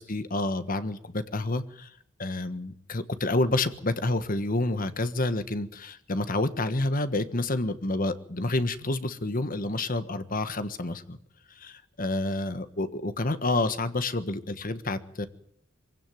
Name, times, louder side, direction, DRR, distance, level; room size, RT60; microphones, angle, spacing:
voice 1, 0.0-1.9 2.2-11.2 11.5-15.3, left 2 dB, 45° left, 11 dB, 1.4 m, -29 dB
23.5 x 16.5 x 9.3 m, 0.69 s
head